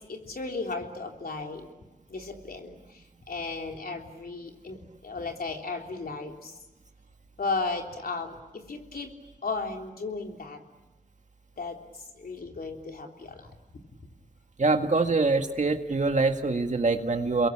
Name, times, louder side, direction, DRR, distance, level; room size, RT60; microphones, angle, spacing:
voice 1, 0.1-1.7 2.1-4.8 5.0-6.6 7.4-9.1 9.4-10.6 11.6-11.8 12.2-13.5, left 3 dB, 70° left, 2 dB, 3.5 m, -35 dB
voice 2, 14.6-17.5, right 3 dB, 50° right, 5 dB, 1.9 m, -24 dB
29.5 x 22.5 x 8.7 m, 1.1 s
cardioid pair, 55°, 16 cm